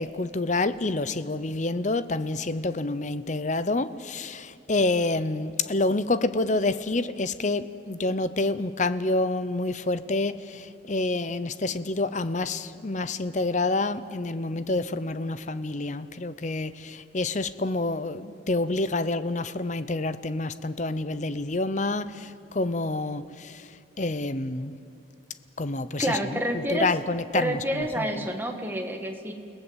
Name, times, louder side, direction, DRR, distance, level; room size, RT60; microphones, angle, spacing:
voice 1, 0.0-23.7 24.0-24.8 25.6-28.2, left 2 dB, 40° left, 14 dB, 0.7 m, -28 dB
voice 2, 26.0-26.9 27.3-29.3, right 1 dB, 10° right, 3 dB, 1.8 m, -28 dB
29.5 x 18.5 x 8.1 m, 2.6 s
head